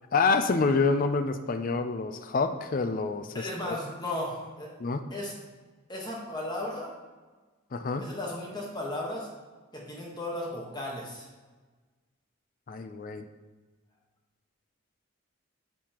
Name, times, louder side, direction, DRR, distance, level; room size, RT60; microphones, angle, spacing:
voice 1, 0.1-3.8 4.8-5.1 7.7-8.1 12.7-13.2, left 4 dB, 40° left, 8 dB, 0.4 m, -27 dB
voice 2, 3.3-4.7 5.1-5.4 5.9-6.9 8.0-9.3 9.7-11.3, left 1 dB, 20° left, -2 dB, 1.2 m, -35 dB
9.4 x 5.4 x 2.9 m, 1.3 s
head